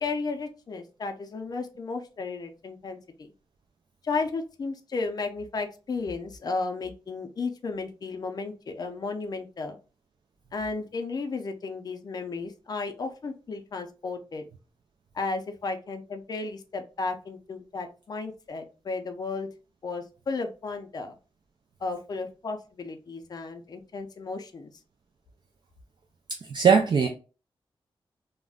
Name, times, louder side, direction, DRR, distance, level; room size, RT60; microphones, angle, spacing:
voice 1, 0.0-3.3 4.0-9.8 10.5-14.5 15.1-19.5 19.8-21.1 21.8-24.7, left 4 dB, 45° left, 5 dB, 0.4 m, -34 dB
voice 2, 26.3-27.1, right 6 dB, 55° right, 2 dB, 0.4 m, -21 dB
2.3 x 2.1 x 3.4 m, 0.34 s
wide cardioid pair, 135°, 10 cm